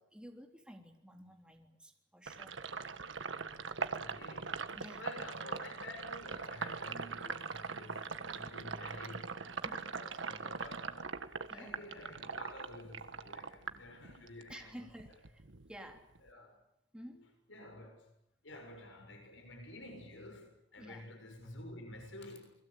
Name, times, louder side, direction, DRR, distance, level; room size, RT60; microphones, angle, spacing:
voice 1, 0.0-2.6 4.8-5.0 9.6-9.9 11.5-11.7 14.5-15.4 15.7-16.1 16.9-17.3 20.8-21.0, equal, 5° right, 3.6 m, -52 dB
Sink (filling or washing), 2.3-14.5 14.9-16.3, right 5 dB, 80° right, 1.5 m, -41 dB
voice 2, 3.9-11.1 11.5-14.9 16.2-16.6 17.5-18.1 18.4-22.5, left 1 dB, 85° left, 6.6 m, -50 dB
29.0 x 21.5 x 8.6 m
head